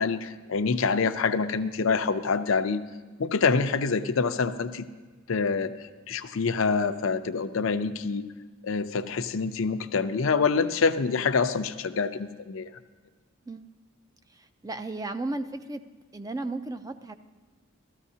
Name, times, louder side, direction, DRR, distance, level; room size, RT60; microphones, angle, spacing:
voice 1, 0.0-2.8 3.2-4.9 5.3-5.7 6.1-8.3 8.6-12.7, left 5 dB, 75° left, 10 dB, 0.5 m, -26 dB
voice 2, 14.3-15.8 16.1-17.1, right 2 dB, 15° right, 9 dB, 0.3 m, -34 dB
15.5 x 13.0 x 2.8 m, 1.4 s
head